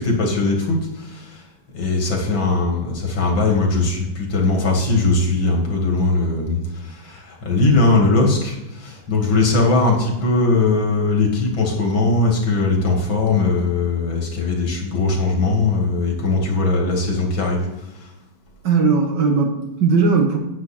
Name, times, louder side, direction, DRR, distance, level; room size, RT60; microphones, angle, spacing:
voice 1, 0.0-1.4 1.7-17.7 17.9-18.1, left 3 dB, 85° left, 1 dB, 3.0 m, -20 dB
voice 2, 18.6-20.4, right 4 dB, 65° right, 2 dB, 1.9 m, -18 dB
9.6 x 9.1 x 4.3 m, 0.98 s
omnidirectional pair, 2.1 m